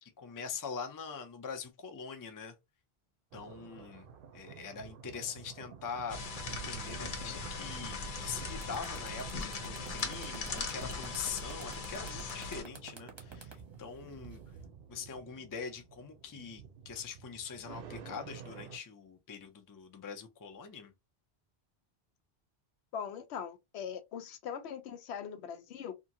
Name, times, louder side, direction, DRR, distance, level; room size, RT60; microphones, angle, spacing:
voice 1, 0.0-2.5 3.3-4.1 4.3-6.2 6.5-14.4 14.9-20.9, left 6 dB, 35° left, 0.3 m, -43 dB
sound 1, 3.3-18.8, right 7 dB, 65° right, 0.7 m, -50 dB
sound 2, 6.1-12.6, left 4 dB, 55° left, 0.9 m, -40 dB
sound 3, 8.1-8.2 8.5-14.6, right 4 dB, 30° right, 0.7 m, -50 dB
voice 2, 22.9-25.9, left 8 dB, 85° left, 0.9 m, -41 dB
2.9 x 2.4 x 2.6 m
omnidirectional pair, 1.1 m